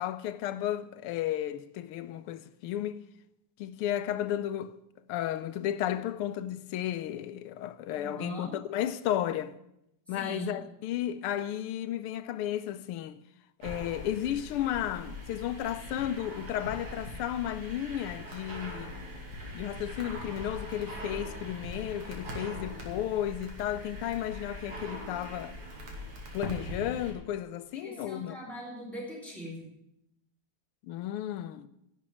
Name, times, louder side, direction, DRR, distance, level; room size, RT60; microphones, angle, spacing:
voice 1, 0.0-3.0 3.6-4.7 5.1-9.5 10.1-13.2 13.6-18.9 19.5-25.6 26.3-28.4 30.9-31.7, left 11 dB, 85° left, 1.6 m, -33 dB
voice 2, 7.9-8.6 10.1-10.6 27.7-29.7, right 2 dB, ahead, 4.5 m, -41 dB
sound 1, 13.6-27.1, equal, 80° right, 3.4 m, -42 dB
11.5 x 7.4 x 9.7 m
omnidirectional pair, 2.4 m